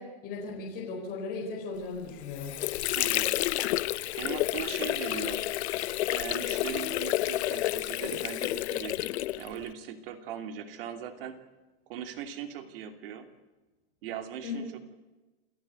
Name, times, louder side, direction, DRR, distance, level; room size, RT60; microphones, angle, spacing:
voice 1, 0.0-2.6 14.4-14.6, left 4 dB, 25° left, -2 dB, 4.6 m, -37 dB
Water / Sink (filling or washing), 2.0-9.7, left 15 dB, 80° left, 0.9 m, -30 dB
voice 2, 3.0-3.3 4.2-5.4 6.1-11.4 11.9-13.3 14.0-14.8, right 8 dB, 55° right, 9 dB, 2.8 m, -39 dB
28.5 x 14.5 x 9.4 m, 1.1 s
supercardioid pair, 175°, 33 cm